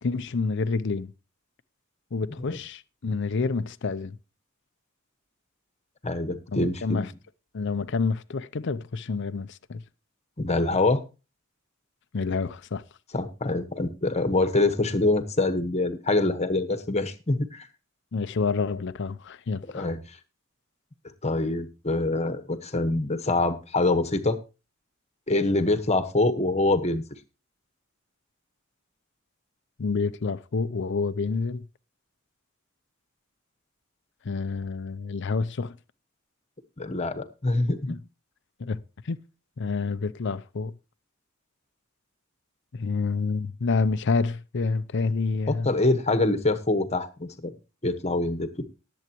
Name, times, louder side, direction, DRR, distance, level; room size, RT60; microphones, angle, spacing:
voice 1, 0.0-1.1 2.1-4.2 6.5-7.1 7.5-9.8 12.1-12.8 18.1-19.9 29.8-31.7 34.2-35.8 37.9-38.0 38.6-39.2 39.6-40.7 42.7-45.7, left 4 dB, 60° left, 0.6 m, -28 dB
voice 2, 6.0-7.1 10.4-11.0 13.1-17.7 19.7-20.0 21.2-24.4 25.3-27.0 36.8-37.8 45.5-47.5 47.8-48.5, left 2 dB, 30° left, 1.2 m, -25 dB
19.0 x 7.9 x 2.9 m
head